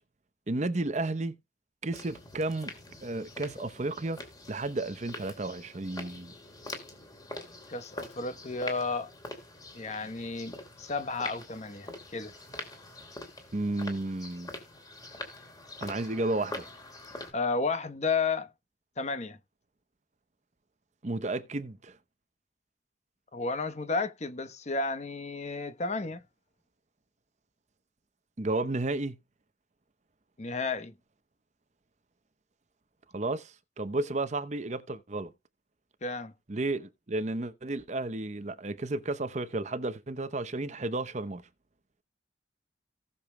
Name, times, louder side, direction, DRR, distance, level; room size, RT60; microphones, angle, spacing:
voice 1, 0.5-1.4 1.8-2.7 3.0-6.3 13.5-14.5 15.8-16.6 21.0-22.0 28.4-29.2 33.1-35.3 36.5-41.4, right 2 dB, 40° right, 0.8 m, -32 dB
sound 1, 1.9-17.3, left 2 dB, 20° left, 2.8 m, -44 dB
voice 2, 7.7-9.1 9.7-12.3 17.3-18.5 19.0-19.4 23.3-26.2 30.4-30.9 36.0-36.3, left 4 dB, 40° left, 0.9 m, -32 dB
18.0 x 6.8 x 2.2 m
head